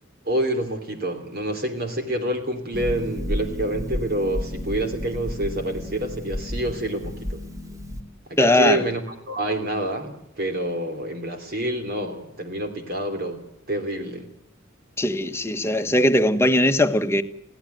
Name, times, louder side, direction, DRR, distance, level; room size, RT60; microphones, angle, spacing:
voice 1, 0.2-7.4 8.3-9.0 9.3-13.4 13.7-14.3, right 1 dB, 50° right, 3.0 m, -27 dB
Harp, 2.7-8.0, left 1 dB, 15° right, 1.9 m, -32 dB
voice 2, 8.4-8.8 15.0-17.2, left 1 dB, 15° left, 1.3 m, -19 dB
23.0 x 16.5 x 9.4 m
head